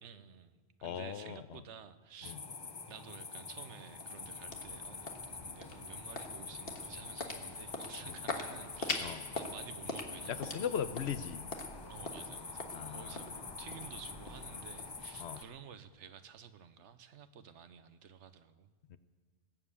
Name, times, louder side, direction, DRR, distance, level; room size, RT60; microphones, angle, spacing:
voice 1, 0.0-2.4 2.9-10.7 11.9-18.7, right 7 dB, 75° right, 12 dB, 1.1 m, -52 dB
voice 2, 0.8-1.6 2.2-2.4 9.0-9.2 10.3-11.5 12.7-13.3 15.2-15.4 18.9-19.0, left 8 dB, 70° left, 13 dB, 0.9 m, -39 dB
sound 1, 2.2-15.4, left 4 dB, 30° left, 0.5 m, -46 dB
sound 2, 3.8-15.9, left 3 dB, 50° left, 1.6 m, -44 dB
19.5 x 7.5 x 8.3 m, 1.5 s
omnidirectional pair, 1.2 m